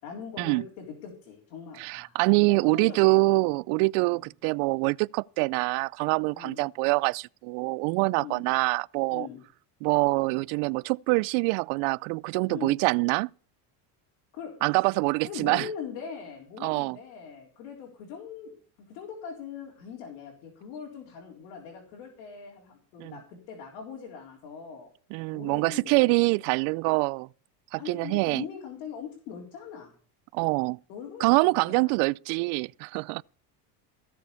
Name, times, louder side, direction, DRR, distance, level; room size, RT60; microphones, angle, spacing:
voice 1, 0.0-2.2 2.5-3.3 4.1-4.3 6.3-6.6 8.2-8.4 9.1-9.4 12.5-12.7 14.3-14.5 15.2-18.5 18.8-24.9 25.3-26.2 27.8-29.9 30.9-31.9, left 7 dB, 85° left, 4.1 m, -41 dB
voice 2, 1.8-9.3 9.8-13.3 14.6-15.7 16.6-17.0 23.0-23.1 25.1-27.3 27.7-28.4 30.3-30.8 31.2-33.2, right 27 dB, 75° right, 0.5 m, -25 dB
16.0 x 7.1 x 7.0 m
supercardioid pair, 105°, 47 cm